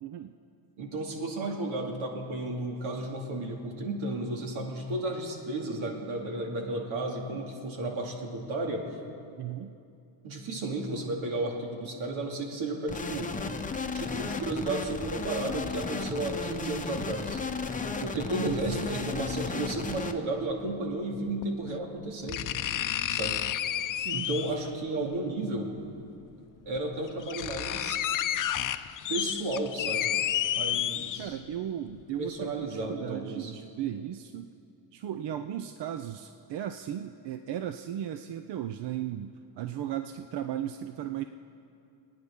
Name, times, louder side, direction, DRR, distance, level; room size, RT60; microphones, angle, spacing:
voice 1, 0.0-0.3 9.4-9.8 18.3-18.6 18.9-19.1 24.0-24.5 31.2-34.5 34.9-41.2, right 10 dB, 55° right, 9 dB, 0.7 m, -36 dB
voice 2, 0.8-8.9 10.2-13.3 13.9-17.4 18.0-22.5 23.1-23.4 24.1-25.7 26.7-28.0 29.1-30.1 30.5-31.4 32.2-33.5, right 2 dB, 75° right, 1 dB, 2.5 m, -33 dB
sound 1, 12.9-20.1, left 4 dB, 15° left, 1.0 m, -34 dB
sound 2, 19.9-20.0 21.4-21.5 22.3-24.7 26.0-26.1 26.8-26.9 27.1-31.5 32.0-32.1, left 11 dB, 40° left, 0.6 m, -31 dB
29.0 x 9.7 x 3.7 m, 2.5 s
supercardioid pair, 80°, 49 cm